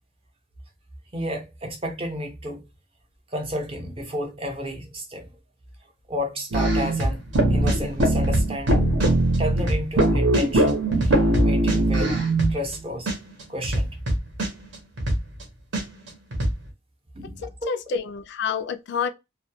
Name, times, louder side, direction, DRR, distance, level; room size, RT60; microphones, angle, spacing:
voice 1, 1.1-2.6 3.3-5.3 6.1-7.2 7.5-8.9 9.4-13.1 13.5-14.0 17.1-17.7, equal, 30° right, 0.6 m, -32 dB
sound 1, 6.5-12.8 13.1-13.2 13.4-15.4 15.7-15.8 16.1-16.5, right 1 dB, 70° right, 0.8 m, -21 dB
voice 2, 17.4-19.1, left 7 dB, 60° left, 0.3 m, -28 dB
2.3 x 2.1 x 2.7 m
head